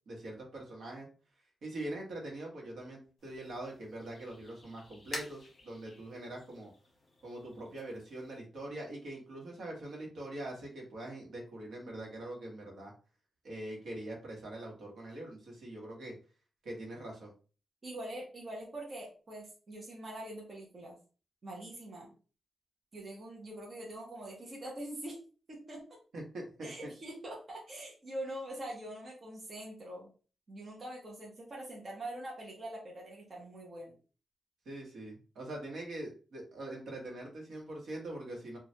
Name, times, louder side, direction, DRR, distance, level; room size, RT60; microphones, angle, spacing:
voice 1, 0.1-1.1 1.6-6.7 7.2-12.9 13.4-16.1 16.6-17.3 26.1-26.9 34.6-38.6, right 1 dB, 70° right, -1 dB, 1.0 m, -43 dB
sound 1, 3.2-8.4, left 2 dB, 40° left, 1.0 m, -50 dB
voice 2, 17.8-21.0 21.4-22.1 22.9-25.2 25.5-25.8 26.6-30.1 30.5-33.9, right 1 dB, 30° right, -2 dB, 0.7 m, -44 dB
3.1 x 2.3 x 2.7 m, 0.36 s
wide cardioid pair, 170°, 0 cm